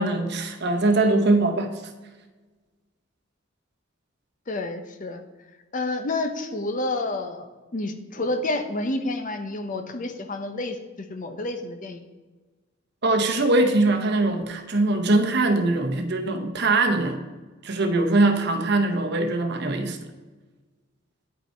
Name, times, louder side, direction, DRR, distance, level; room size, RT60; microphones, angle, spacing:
voice 1, 0.0-1.7 13.0-17.2 17.6-20.0, right 2 dB, 55° right, 6 dB, 0.9 m, -22 dB
voice 2, 4.5-5.2 5.7-12.0, left 2 dB, 40° left, 8 dB, 0.7 m, -29 dB
9.9 x 5.4 x 4.4 m, 1.3 s
head